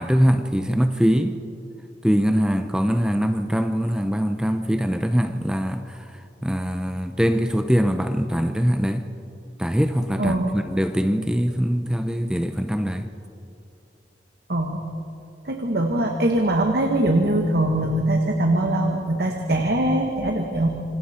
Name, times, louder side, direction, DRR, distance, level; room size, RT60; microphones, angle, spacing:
voice 1, 0.0-1.4 2.0-6.0 6.4-9.1 9.6-13.1, equal, 5° right, 0.7 m, -22 dB
voice 2, 10.2-10.5 14.5-14.8 15.4-20.8, right 1 dB, 60° right, 1.6 m, -22 dB
27.0 x 25.5 x 4.4 m
head